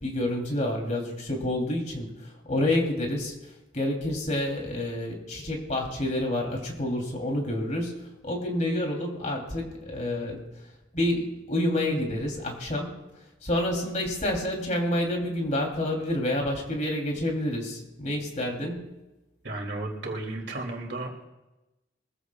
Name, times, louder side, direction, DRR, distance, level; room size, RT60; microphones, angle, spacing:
voice 1, 0.0-2.1 2.5-3.3 3.7-8.0 8.2-10.4 10.9-12.9 13.4-18.9, left 1 dB, 40° left, 1 dB, 3.3 m, -28 dB
voice 2, 19.4-21.2, right 2 dB, 70° right, 1 dB, 2.9 m, -34 dB
23.0 x 15.0 x 2.4 m, 1.0 s
head